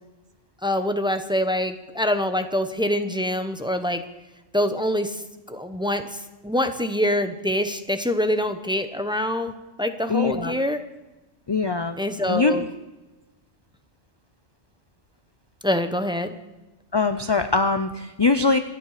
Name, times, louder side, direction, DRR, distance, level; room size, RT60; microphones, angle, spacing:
voice 1, 0.6-4.0 4.5-5.2 5.5-10.8 12.0-12.7 15.6-16.3, left 1 dB, 5° right, 7 dB, 0.8 m, -25 dB
voice 2, 10.1-10.6 11.5-12.0 12.3-12.6 16.9-18.6, left 4 dB, 35° left, 9 dB, 0.4 m, -22 dB
27.0 x 9.6 x 5.0 m, 1.1 s
omnidirectional pair, 1.3 m